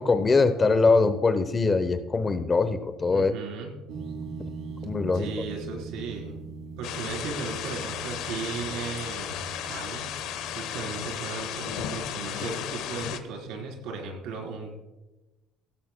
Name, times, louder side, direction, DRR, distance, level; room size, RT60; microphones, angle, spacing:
voice 1, 0.0-3.3 4.8-5.3, left 4 dB, 20° left, 11 dB, 0.7 m, -22 dB
voice 2, 3.1-3.7 5.1-6.4 6.8-10.1 10.5-14.7, right 5 dB, 80° right, 1 dB, 3.7 m, -36 dB
sound 1, 3.9-11.1, right 4 dB, 60° right, 2.7 m, -41 dB
sound 2, 6.8-13.2, left 10 dB, 75° left, 1.0 m, -34 dB
16.5 x 15.5 x 2.2 m, 1.1 s
cardioid pair, 150°, 0 cm